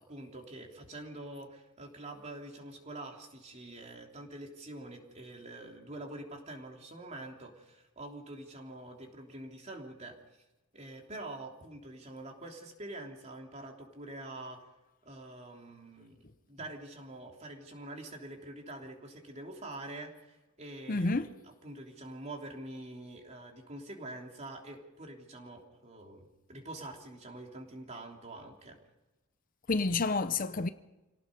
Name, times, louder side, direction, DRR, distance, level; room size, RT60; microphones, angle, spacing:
voice 1, 0.0-10.2 10.7-14.7 15.0-28.8, right 2 dB, 35° right, 3.3 m, -46 dB
voice 2, 20.9-21.3 29.7-30.7, left 3 dB, 40° left, 0.7 m, -29 dB
27.5 x 18.0 x 5.4 m
head